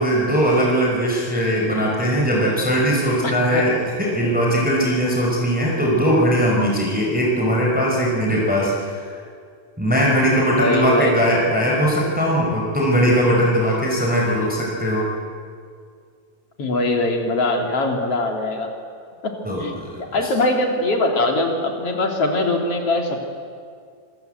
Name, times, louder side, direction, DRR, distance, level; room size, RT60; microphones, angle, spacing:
voice 1, 0.0-9.1 9.8-15.1 19.4-20.0, equal, 5° right, -2 dB, 5.1 m, -20 dB
voice 2, 3.2-3.8 10.6-11.2 16.6-18.7 19.2-19.3 19.6-23.3, left 2 dB, 50° left, 2 dB, 3.7 m, -22 dB
27.0 x 25.0 x 8.1 m, 2.2 s
omnidirectional pair, 3.6 m